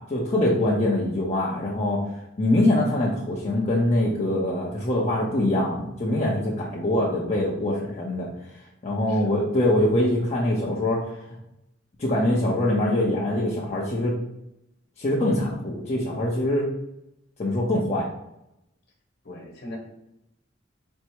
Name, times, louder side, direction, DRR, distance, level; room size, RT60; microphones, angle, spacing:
voice 1, 0.1-2.0 2.4-8.3 8.8-11.1 12.0-14.1 15.0-16.7 17.4-18.1, left 1 dB, 35° left, -5 dB, 0.6 m, -23 dB
voice 2, 9.1-9.6 19.2-19.8, left 1 dB, 55° left, 0 dB, 1.3 m, -41 dB
4.4 x 2.0 x 4.4 m, 0.86 s
head